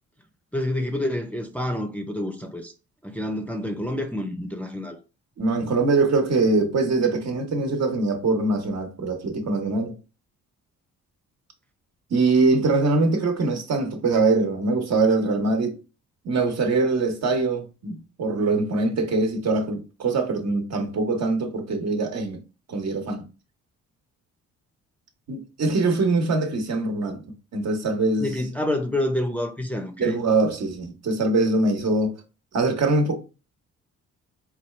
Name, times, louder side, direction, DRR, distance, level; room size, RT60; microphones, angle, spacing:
voice 1, 0.5-2.7 3.0-5.0 28.2-30.2, left 1 dB, 5° left, 0.6 m, -28 dB
voice 2, 5.4-9.9 12.1-15.8 16.2-22.4 22.7-23.2 25.3-27.2 27.5-28.3 30.0-32.1 32.5-33.2, right 3 dB, 60° right, 1.1 m, -23 dB
4.4 x 2.3 x 3.2 m
cardioid pair, 90°, 30 cm